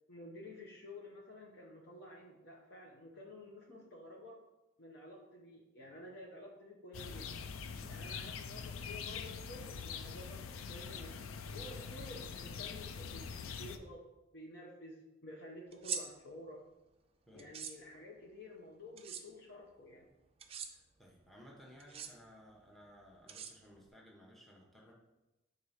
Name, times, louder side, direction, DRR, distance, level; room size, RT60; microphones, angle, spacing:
voice 1, 0.1-4.4 4.8-7.3 7.9-11.2 11.5-13.2 13.6-14.0 14.3-16.7 17.3-20.1, left 1 dB, 55° left, -1 dB, 0.7 m, -51 dB
sound 1, 6.9-13.8, left 6 dB, 85° left, 0.4 m, -44 dB
sound 2, 15.7-16.0 17.4-17.7 19.0-19.2 20.4-20.7 21.8-22.1 23.3-23.9, right 7 dB, 30° right, 0.4 m, -41 dB
voice 2, 20.7-24.9, equal, ahead, -3 dB, 0.8 m, -58 dB
4.7 x 3.9 x 5.6 m, 0.98 s
head